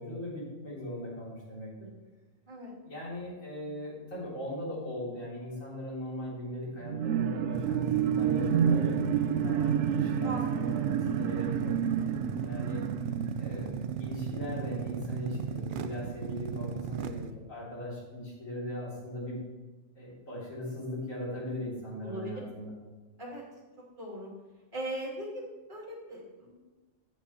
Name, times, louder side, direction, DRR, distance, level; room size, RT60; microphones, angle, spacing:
voice 1, 0.0-1.9 2.8-11.7 12.4-12.8 13.4-13.7 14.0-19.4 20.0-22.7, left 1 dB, 90° left, -6 dB, 3.6 m, -39 dB
sound 1, 6.8-14.6 15.0-15.1, right 8 dB, 85° right, 1.0 m, -29 dB
sound 2, 7.5-17.3, right 6 dB, 65° right, 0.5 m, -36 dB
voice 2, 22.0-22.4 23.2-23.4 24.0-24.3 24.7-25.3 25.7-26.6, right 1 dB, 40° right, -4 dB, 2.8 m, -39 dB
8.4 x 8.1 x 4.2 m, 1.2 s
omnidirectional pair, 1.3 m